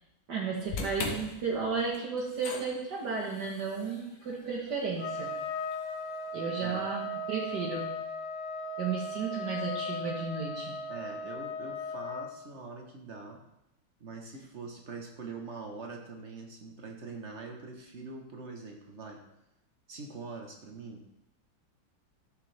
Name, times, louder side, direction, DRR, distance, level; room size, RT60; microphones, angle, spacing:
voice 1, 0.3-5.3 6.3-7.9 8.8-10.8, right 5 dB, 60° right, -2 dB, 1.9 m, -33 dB
sound 1, 0.7-6.9, left 4 dB, 85° left, 1.9 m, -43 dB
Trumpet, 5.0-12.3, left 1 dB, 50° left, 1.1 m, -37 dB
voice 2, 10.9-13.4 14.0-19.2 19.9-21.0, right 3 dB, 40° right, 2 dB, 1.3 m, -43 dB
12.5 x 6.7 x 3.4 m, 0.85 s
omnidirectional pair, 2.2 m